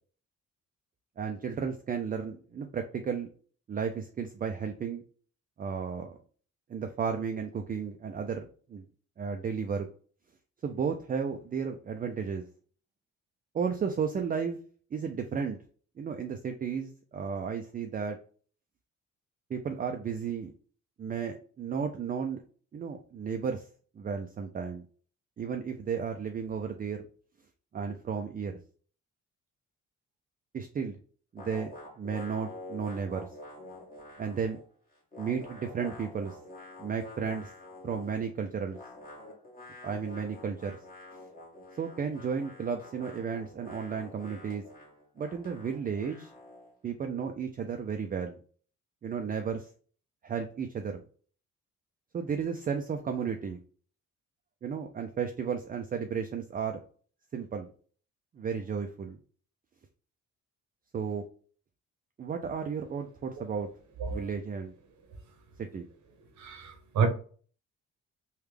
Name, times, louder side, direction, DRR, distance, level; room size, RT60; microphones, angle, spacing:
voice 1, 1.2-3.3 3.7-5.0 5.6-6.2 6.7-8.8 9.2-9.9 10.6-12.4 13.5-14.6 14.9-15.6 16.0-18.2 19.5-20.5 21.0-22.4 22.7-23.7 24.0-24.8 25.4-27.1 27.7-28.6 30.5-31.0 31.3-33.3 34.2-34.6 35.2-36.4 36.8-37.5 37.8-38.8 39.8-40.8 41.8-44.6 45.2-46.3 46.8-48.4 49.0-49.7 50.2-51.0 52.1-53.6 54.6-56.8 57.3-57.7 58.3-59.2 60.9-61.2 62.2-63.7 64.1-64.7 65.6-65.8, right 6 dB, 30° right, 0.4 m, -33 dB
sound 1, 31.4-34.7 34.9-38.2 38.7-46.7, left 2 dB, 30° left, 1.5 m, -48 dB
voice 2, 66.4-67.1, right 6 dB, 70° right, 0.9 m, -29 dB
3.4 x 2.4 x 3.3 m
cardioid pair, 90°, 30 cm